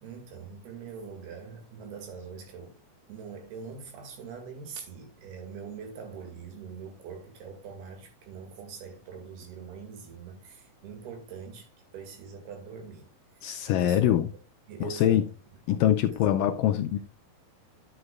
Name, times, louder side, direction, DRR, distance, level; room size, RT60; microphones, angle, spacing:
voice 1, 0.0-2.8 3.1-13.1 13.4-14.2 14.7-15.2 15.5-15.6 16.1-16.4, right 6 dB, 85° right, 4.1 m, -43 dB
voice 2, 13.4-14.3 14.8-15.2 15.7-17.0, left 11 dB, 80° left, 2.0 m, -24 dB
11.0 x 7.9 x 2.3 m
omnidirectional pair, 4.4 m